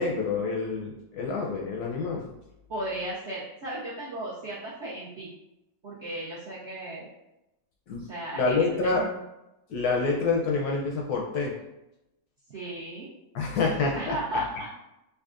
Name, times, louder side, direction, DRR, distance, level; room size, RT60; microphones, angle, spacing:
voice 1, 0.0-2.3 7.9-8.1 8.3-9.0 9.7-11.5 13.3-14.1, left 4 dB, 70° left, 0 dB, 1.0 m, -27 dB
voice 2, 2.7-5.3 5.8-7.1 8.0-9.1 12.5-13.1 13.9-14.7, right 1 dB, 70° right, -7 dB, 0.6 m, -35 dB
5.3 x 2.3 x 2.4 m, 0.92 s
omnidirectional pair, 2.0 m